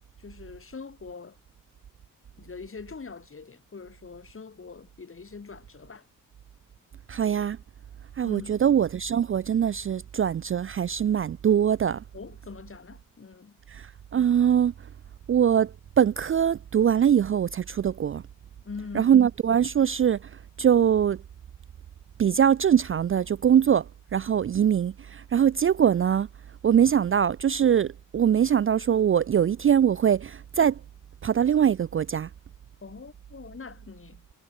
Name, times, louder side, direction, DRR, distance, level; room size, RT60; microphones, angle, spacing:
voice 1, 0.2-1.4 2.4-6.1 8.2-8.6 12.1-13.6 18.6-19.1 32.8-34.2, left 5 dB, 40° left, 5.2 m, -42 dB
voice 2, 7.1-7.6 8.2-12.0 13.7-14.7 15.3-18.2 18.9-20.2 20.6-21.2 22.2-23.9 24.1-26.3 26.6-30.8 31.2-32.3, right 9 dB, 40° right, 0.4 m, -22 dB
cardioid pair, 95°, 33 cm